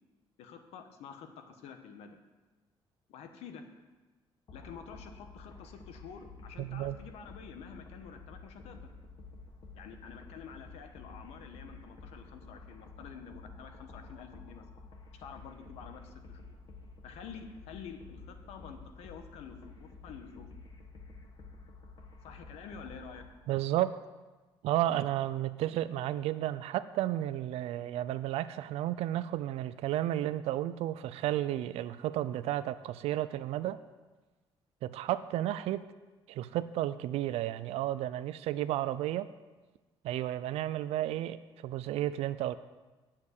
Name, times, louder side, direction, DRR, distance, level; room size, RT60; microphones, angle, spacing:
voice 1, 0.4-2.2 3.1-3.6 4.5-8.9 9.7-14.6 15.2-16.4 17.0-20.5 22.2-23.3, left 6 dB, 85° left, 6 dB, 1.2 m, -48 dB
sound 1, 4.5-23.3, left 3 dB, 45° left, 1.4 m, -51 dB
voice 2, 6.6-7.0 23.5-23.9 24.6-33.8 34.8-35.8 36.3-39.3 40.0-42.5, right 13 dB, 80° right, 13 dB, 0.4 m, -32 dB
8.6 x 7.3 x 8.1 m, 1.2 s
cardioid pair, 130°, 10 cm